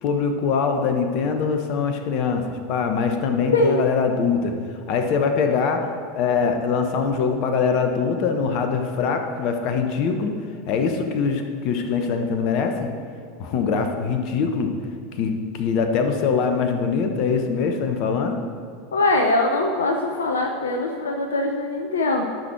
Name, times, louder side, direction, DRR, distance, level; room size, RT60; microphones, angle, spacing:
voice 1, 0.0-4.5 4.9-5.9 6.1-10.4 10.7-12.9 13.4-14.7 15.1-18.4, left 5 dB, 45° left, 5 dB, 1.0 m, -23 dB
voice 2, 18.9-22.3, left 2 dB, 70° left, 3 dB, 0.7 m, -22 dB
12.0 x 6.2 x 4.6 m, 2.4 s
figure-of-eight pair, 80°, 0 cm